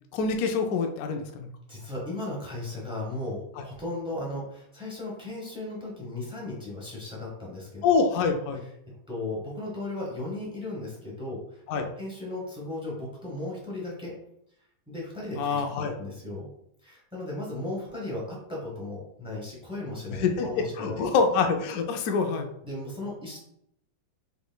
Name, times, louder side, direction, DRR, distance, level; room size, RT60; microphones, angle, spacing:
voice 1, 0.1-1.5 7.8-8.6 11.7-11.9 15.4-15.9 20.2-22.5, left 5 dB, 90° left, 5 dB, 0.8 m, -26 dB
voice 2, 1.7-7.9 8.9-14.1 14.9-16.5 16.8-21.1 22.6-23.4, left 2 dB, 5° right, -4 dB, 0.9 m, -36 dB
5.1 x 3.2 x 2.2 m, 0.73 s
omnidirectional pair, 2.2 m